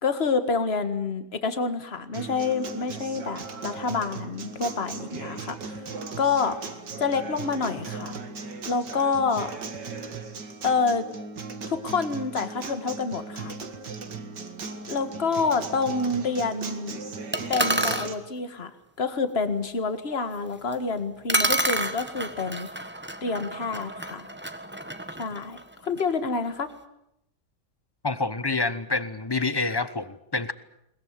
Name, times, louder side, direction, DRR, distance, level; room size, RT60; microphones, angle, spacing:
voice 1, 0.0-5.7 6.2-6.6 7.0-8.2 8.7-9.6 10.6-11.1 11.7-13.5 14.9-17.0 17.5-18.7 19.0-22.7 23.2-24.3 25.2-26.7, left 4 dB, 35° left, 10 dB, 2.0 m, -27 dB
Acoustic guitar, 2.1-18.1, right 4 dB, 85° right, 2.7 m, -37 dB
sound 1, 17.3-18.1 20.7-20.8 21.3-26.1, right 1 dB, 5° right, 1.3 m, -29 dB
voice 2, 28.0-30.5, left 3 dB, 20° left, 14 dB, 0.8 m, -27 dB
22.0 x 21.0 x 9.6 m, 0.79 s
omnidirectional pair, 1.8 m